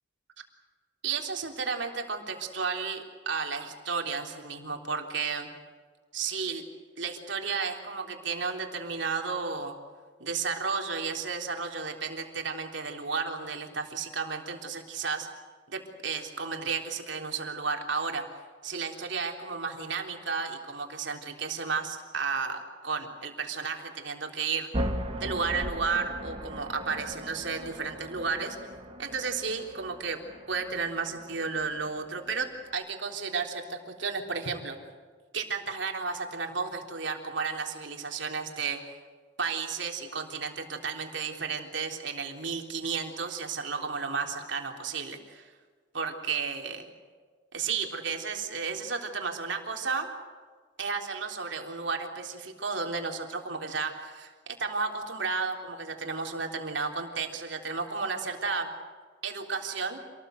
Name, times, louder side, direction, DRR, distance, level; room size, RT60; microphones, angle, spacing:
voice 1, 1.0-5.5 6.1-6.6 7.0-9.7 10.2-15.3 15.7-18.2 18.6-24.7 25.2-28.6 29.0-30.2 30.5-32.5 32.7-34.8 35.3-38.8 39.4-45.5 45.9-46.9 47.5-50.1 50.8-54.3 54.6-58.7 59.2-60.0, right 5 dB, 70° right, 2 dB, 3.6 m, -33 dB
sound 1, 24.7-32.7, equal, 35° right, 2.9 m, -38 dB
27.5 x 19.0 x 8.0 m, 1.5 s
head